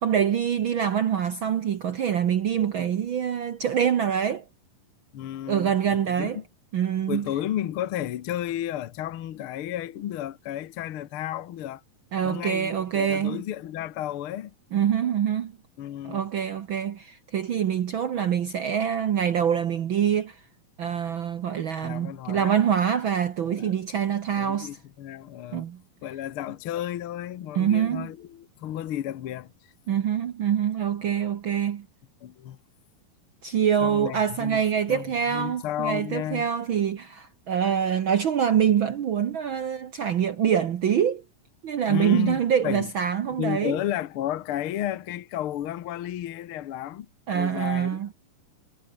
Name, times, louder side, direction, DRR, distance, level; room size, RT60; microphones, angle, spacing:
voice 1, 0.0-4.4 5.5-6.4 6.7-7.3 12.1-13.4 14.7-15.5 16.0-20.4 20.8-24.7 25.5-25.8 27.5-28.1 29.9-31.9 33.4-41.2 41.6-43.8 47.3-48.1, right 8 dB, 75° right, 1.1 m, -25 dB
voice 2, 5.1-6.4 7.1-11.8 12.2-14.5 15.8-16.2 21.8-22.6 23.4-23.7 24.4-25.7 26.0-29.7 32.2-32.6 33.8-34.6 34.9-36.5 41.9-42.9 43.4-47.1 47.3-48.1, left 12 dB, 65° left, 1.3 m, -33 dB
omnidirectional pair, 3.8 m